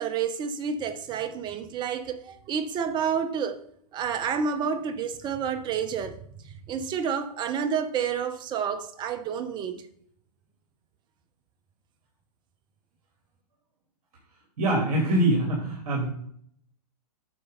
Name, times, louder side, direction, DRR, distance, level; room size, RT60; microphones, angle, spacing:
voice 1, 0.0-3.6 3.9-6.2 6.7-9.8, right 7 dB, 20° right, 0.8 m, -29 dB
voice 2, 14.6-16.1, right 1 dB, 65° right, 2.9 m, -24 dB
9.3 x 6.4 x 3.9 m
hypercardioid pair, 130°, 20 cm